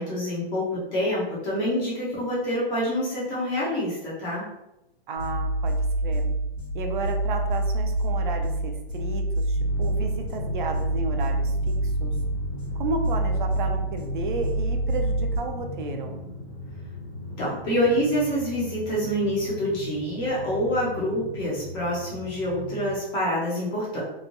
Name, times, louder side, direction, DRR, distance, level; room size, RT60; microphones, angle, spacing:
voice 1, 0.0-4.4 17.4-24.0, equal, 15° left, -6 dB, 0.4 m, -26 dB
voice 2, 5.1-6.3 6.7-12.1 12.8-16.2, right 3 dB, 50° right, 4 dB, 0.5 m, -33 dB
sound 1, 5.2-15.4, right 1 dB, 90° left, 0.9 m, -27 dB
Drum, 9.5-23.0, left 2 dB, 45° left, 0.7 m, -38 dB
3.0 x 2.2 x 2.5 m, 0.89 s
hypercardioid pair, 150°, 31 cm